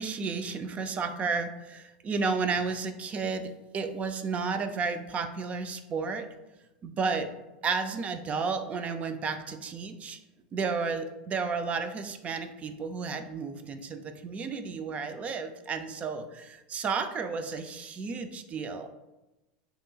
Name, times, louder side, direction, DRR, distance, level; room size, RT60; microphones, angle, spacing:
voice 1, 0.0-6.3 6.8-7.3 7.6-10.2 10.5-18.9, right 4 dB, 30° right, 8 dB, 0.4 m, -32 dB
5.3 x 2.9 x 2.3 m, 0.99 s
hypercardioid pair, 105°, 4 cm